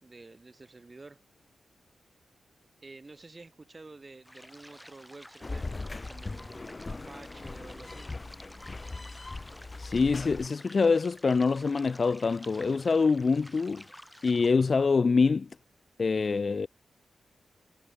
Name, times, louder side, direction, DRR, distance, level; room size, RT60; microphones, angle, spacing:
voice 1, 0.0-1.2 2.8-5.7 6.1-8.1, right 3 dB, 35° right, 3.6 m, -50 dB
sound 1, 4.2-14.5, equal, 5° left, 6.7 m, -51 dB
sound 2, 5.4-10.5, left 3 dB, 35° left, 3.8 m, -40 dB
voice 2, 9.8-13.8 14.2-15.5 16.0-16.7, left 4 dB, 50° left, 0.9 m, -25 dB
supercardioid pair, 45°, 0 cm